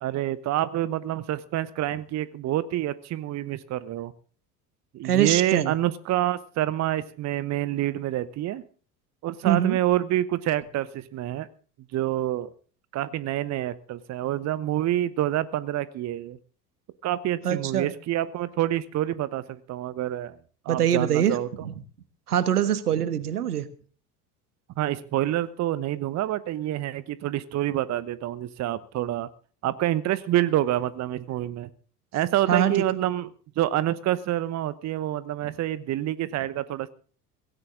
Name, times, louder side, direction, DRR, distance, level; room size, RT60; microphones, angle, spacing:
voice 1, 0.0-4.1 4.9-8.6 9.2-11.5 11.9-12.5 12.9-16.4 17.0-20.4 20.6-21.5 24.8-29.3 29.6-31.7 32.1-33.3 33.6-36.9, right 13 dB, 35° right, 18 dB, 0.9 m, -27 dB
voice 2, 5.0-5.8 9.4-9.8 17.4-17.9 20.7-21.7 22.3-23.7 32.5-32.7, right 10 dB, 75° right, 15 dB, 1.4 m, -23 dB
17.0 x 17.0 x 3.7 m, 0.41 s
figure-of-eight pair, 65°, 46 cm